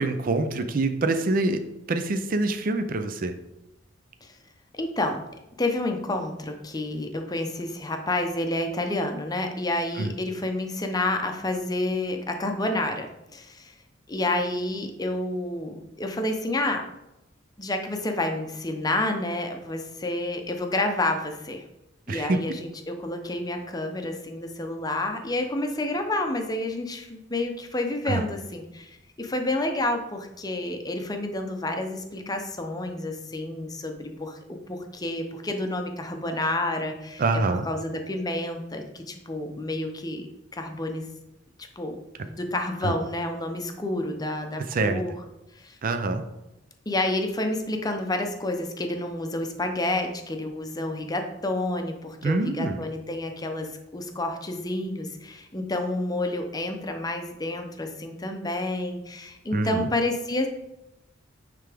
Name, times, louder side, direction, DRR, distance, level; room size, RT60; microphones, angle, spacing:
voice 1, 0.0-1.6 1.9-3.3 10.0-10.1 22.1-22.4 28.1-28.2 37.2-37.7 42.8-42.9 44.7-45.0 45.8-46.2 52.2-52.8 59.5-59.9, right 3 dB, 45° right, 8 dB, 0.5 m, -25 dB
voice 2, 4.7-5.2 5.6-13.7 14.1-16.8 17.6-21.6 22.1-37.4 37.7-40.3 40.5-41.2 41.8-42.0 42.2-45.1 45.5-45.8 46.9-60.5, left 1 dB, 20° left, 4 dB, 0.7 m, -29 dB
9.4 x 3.3 x 3.4 m, 0.91 s
head